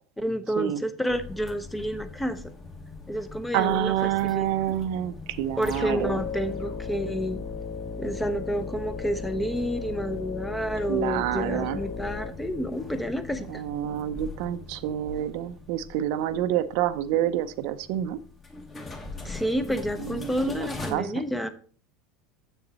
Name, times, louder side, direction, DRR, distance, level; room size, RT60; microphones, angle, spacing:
voice 1, 0.2-2.5 3.1-4.8 5.6-7.4 8.0-13.6 19.2-21.5, equal, 5° left, 11 dB, 0.6 m, -29 dB
sound 1, 1.1-20.9, left 3 dB, 20° left, 1.2 m, -43 dB
voice 2, 3.5-6.2 10.9-11.8 13.5-18.2 20.0-21.1, right 12 dB, 65° right, 12 dB, 0.5 m, -28 dB
sound 2, 5.6-13.1, left 4 dB, 40° left, 1.8 m, -36 dB
7.2 x 6.7 x 4.0 m, 0.44 s
supercardioid pair, 145°, 0 cm